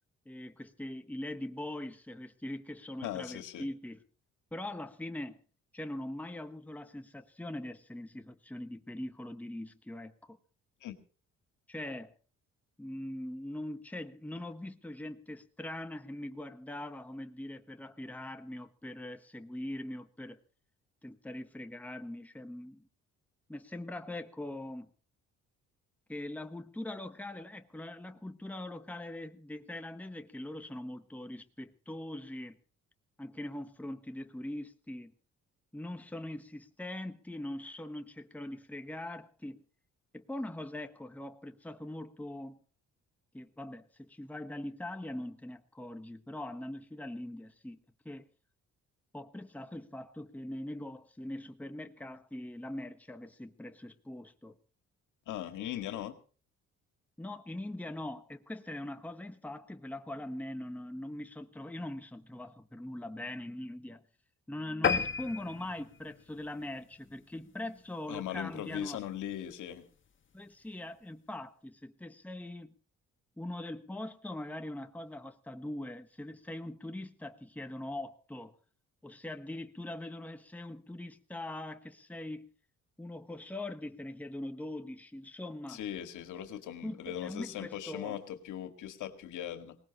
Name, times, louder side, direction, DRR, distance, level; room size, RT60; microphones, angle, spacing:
voice 1, 0.2-4.0 4.5-5.4 5.7-10.4 11.7-12.1 12.8-20.4 21.0-22.9 23.5-24.9 26.1-32.6 33.2-35.1 35.7-39.6 40.1-42.6 43.3-47.8 48.0-48.2 49.1-54.5 57.2-64.0 64.5-69.0 70.3-72.7 73.4-78.5 79.0-82.5 83.0-85.8 86.8-88.2, left 1 dB, 5° left, 1.3 m, -42 dB
voice 2, 3.0-3.7 10.8-10.9 55.3-56.1 68.1-69.8 85.7-89.8, left 11 dB, 85° left, 2.1 m, -39 dB
sound 1, 64.8-67.6 68.1-68.3 68.7-68.8 69.1-69.2 69.4-69.5, left 6 dB, 40° left, 1.6 m, -33 dB
21.0 x 19.0 x 3.0 m
cardioid pair, 90°, 30 cm